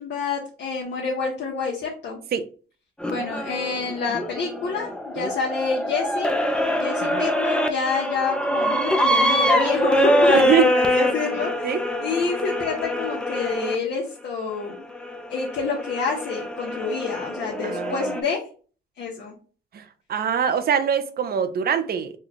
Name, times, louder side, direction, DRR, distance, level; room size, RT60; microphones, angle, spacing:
voice 1, 0.0-2.2 3.1-6.4 6.7-11.7 12.0-14.9 15.3-18.5 19.0-19.3, left 4 dB, 60° left, 0.9 m, -28 dB
sound 1, 3.0-13.7 14.5-18.2, equal, 5° left, 0.5 m, -24 dB
voice 2, 10.3-11.0 11.6-11.8 17.6-18.1 19.7-19.8 20.1-22.1, right 8 dB, 50° right, 0.5 m, -23 dB
3.1 x 2.2 x 4.0 m
cardioid pair, 90°, 20 cm